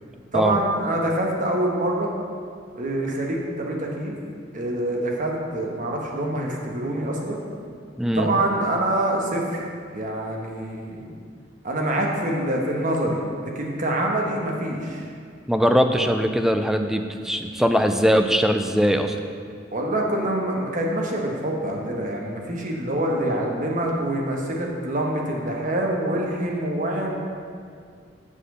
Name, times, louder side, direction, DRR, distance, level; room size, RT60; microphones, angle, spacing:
voice 1, 0.3-2.1 2.8-4.2 4.5-7.4 8.1-9.7 9.9-11.1 11.6-15.0 19.7-27.1, right 1 dB, 45° right, 0 dB, 1.1 m, -25 dB
voice 2, 8.0-8.3 15.5-19.2, equal, 5° right, 6 dB, 0.4 m, -21 dB
7.4 x 4.3 x 6.7 m, 2.2 s
head